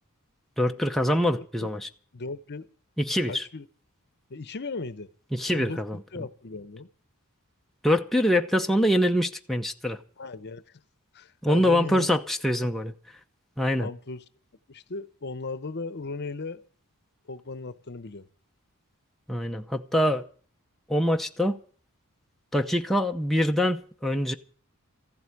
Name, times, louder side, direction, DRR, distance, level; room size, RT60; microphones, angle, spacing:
voice 1, 0.6-1.9 3.0-3.4 5.3-6.0 7.8-10.0 11.4-12.9 13.6-13.9 19.3-20.3 20.9-21.6 22.5-24.3, equal, ahead, 0.7 m, -24 dB
voice 2, 1.4-1.7 2.1-2.7 3.3-3.7 4.3-5.1 5.5-5.8 6.1-6.9 10.2-10.8 11.1-12.2 12.6-12.7 13.8-14.2 14.7-16.6 17.3-18.3, left 3 dB, 50° left, 0.8 m, -37 dB
14.5 x 8.0 x 9.8 m
head